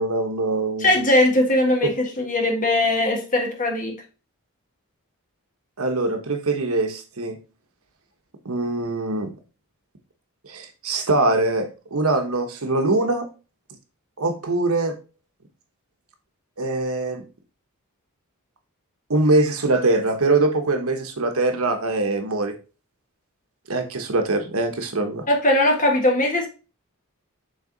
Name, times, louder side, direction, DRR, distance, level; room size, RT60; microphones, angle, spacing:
voice 1, 0.0-0.9 5.8-7.4 8.4-9.3 10.4-13.2 14.2-14.9 16.6-17.2 19.1-22.5 23.7-25.3, right 2 dB, 75° right, 1.1 m, -23 dB
voice 2, 0.8-3.9 25.3-26.5, left 1 dB, 35° left, 1.5 m, -20 dB
6.6 x 4.0 x 3.9 m
head